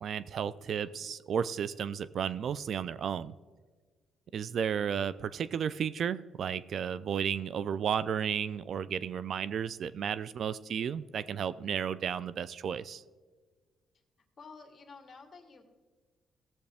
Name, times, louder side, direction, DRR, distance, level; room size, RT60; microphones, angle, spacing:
voice 1, 0.0-3.3 4.3-13.0, right 8 dB, 60° right, 17 dB, 0.4 m, -33 dB
voice 2, 14.4-15.6, left 4 dB, 40° left, 3 dB, 1.9 m, -51 dB
16.5 x 7.6 x 3.5 m, 1.4 s
cardioid pair, 90°, 0 cm